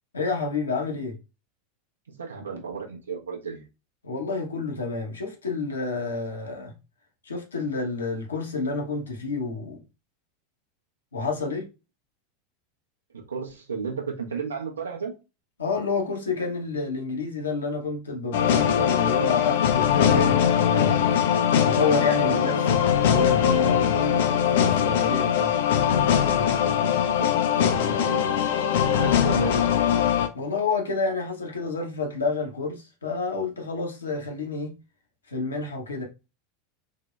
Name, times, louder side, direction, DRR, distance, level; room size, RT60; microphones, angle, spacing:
voice 1, 0.1-1.2 4.0-6.8 7.2-9.8 11.1-11.7 15.6-21.0 21.6-25.6 30.3-34.8 35.3-36.0, left 4 dB, 80° left, 0.8 m, -29 dB
voice 2, 2.1-3.6 13.1-15.1 22.2-22.7 27.1-27.3 27.6-28.4 28.9-29.6, right 6 dB, 75° right, 0.7 m, -33 dB
sound 1, 18.3-30.3, left 8 dB, 60° left, 0.3 m, -21 dB
3.6 x 2.1 x 2.2 m
figure-of-eight pair, 85°, 0 cm